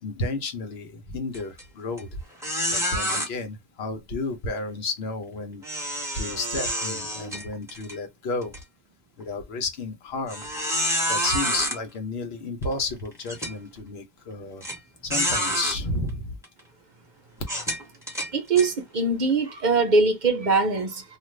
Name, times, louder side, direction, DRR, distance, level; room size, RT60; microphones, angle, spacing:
voice 1, 0.0-2.2 2.7-5.6 6.1-8.6 9.2-10.4 11.1-14.6 15.0-16.4, left 3 dB, 65° left, 1.1 m, -32 dB
sound 1, 1.3-1.6 2.0-2.1 2.4-3.3 5.6-7.9 8.4-8.6 9.2-9.3 10.3-11.8 12.6-12.7 13.3-13.5 14.6-14.7 15.1-15.8 16.4-16.6 17.4-18.7, equal, 5° right, 1.2 m, -28 dB
voice 2, 18.3-21.0, right 3 dB, 45° right, 0.8 m, -22 dB
2.5 x 2.4 x 3.1 m
omnidirectional pair, 1.1 m